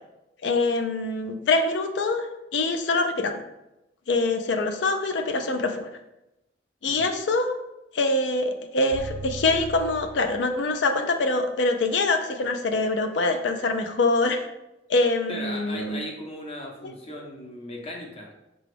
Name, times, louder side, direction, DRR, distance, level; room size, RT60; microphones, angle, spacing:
voice 1, 0.4-3.3 4.1-5.9 6.8-7.6 7.9-14.5 14.9-16.0 16.8-16.9, left 2 dB, 70° left, 7 dB, 0.5 m, -24 dB
sound 1, 8.9-11.0, right 4 dB, 60° right, 0.3 m, -39 dB
voice 2, 15.3-18.5, left 1 dB, 30° left, 1 dB, 0.7 m, -37 dB
4.9 x 2.3 x 3.3 m, 0.92 s
head